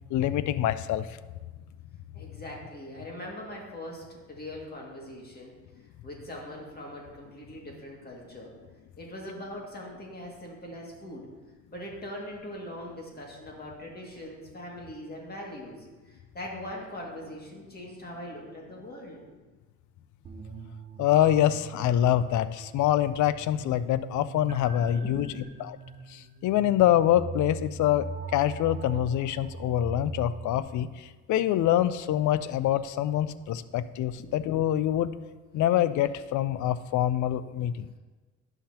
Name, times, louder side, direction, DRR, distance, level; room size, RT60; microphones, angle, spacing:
voice 1, 0.1-1.1 21.0-25.3 25.6-25.8 26.1-28.1 28.3-35.2 35.5-37.9, left 12 dB, 75° left, 14 dB, 0.5 m, -25 dB
voice 2, 2.1-5.5 6.0-8.5 9.0-11.3 11.7-19.2 24.8-25.4 34.1-34.3, left 1 dB, 30° left, -2 dB, 2.1 m, -41 dB
sound 1, 20.2-30.6, right 4 dB, 30° right, 0.7 m, -41 dB
11.5 x 5.8 x 2.9 m, 1.3 s
cardioid pair, 90°, 30 cm